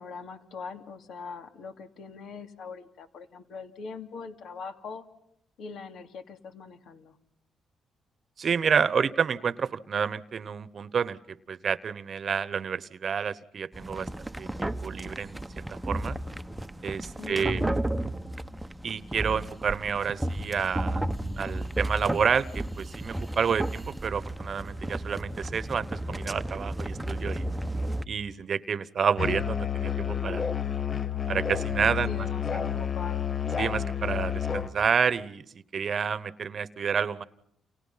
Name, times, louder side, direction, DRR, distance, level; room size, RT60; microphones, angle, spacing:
voice 1, 0.0-5.0 5.6-7.1 17.2-17.8 32.0-33.3, left 5 dB, 70° left, 7 dB, 2.9 m, -41 dB
voice 2, 8.4-16.2 16.8-17.6 18.8-21.0 21.4-27.5 28.0-30.4 31.3-32.3 32.5-32.6 33.6-37.3, right 6 dB, 50° right, 17 dB, 1.1 m, -29 dB
sound 1, 13.7-28.0, right 1 dB, 10° right, 1.0 m, -33 dB
Musical instrument, 29.2-34.8, left 8 dB, 35° left, 1.0 m, -30 dB
29.5 x 29.0 x 5.8 m, 0.76 s
cardioid pair, 90°, 0 cm